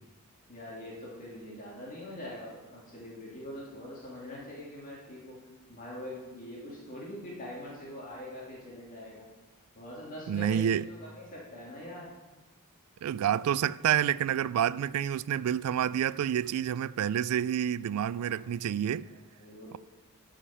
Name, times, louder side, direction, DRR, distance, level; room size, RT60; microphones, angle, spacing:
voice 1, 0.5-5.4 5.7-9.2 9.7-12.1 18.2-18.4 19.4-19.8, left 1 dB, 40° left, 2.1 m, -43 dB
voice 2, 10.3-10.9 13.0-19.1, right 9 dB, 90° right, 0.3 m, -28 dB
12.5 x 5.0 x 5.6 m
head